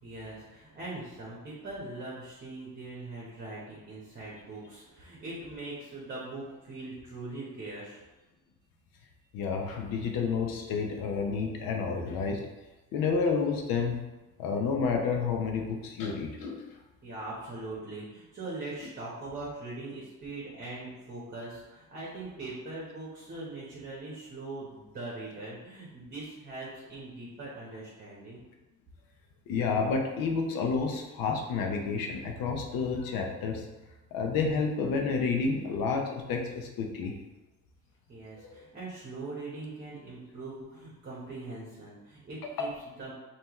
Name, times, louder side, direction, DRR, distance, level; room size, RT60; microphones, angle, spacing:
voice 1, 0.0-8.0 17.0-28.4 38.1-43.1, right 2 dB, 30° right, -6 dB, 1.1 m, -41 dB
voice 2, 9.3-12.4 12.9-14.0 14.4-16.6 29.5-33.6 34.1-37.1 38.4-38.6 42.4-42.7, left 5 dB, 90° left, 2 dB, 0.8 m, -30 dB
5.6 x 3.0 x 3.0 m, 1.1 s
cardioid pair, 155°, 34 cm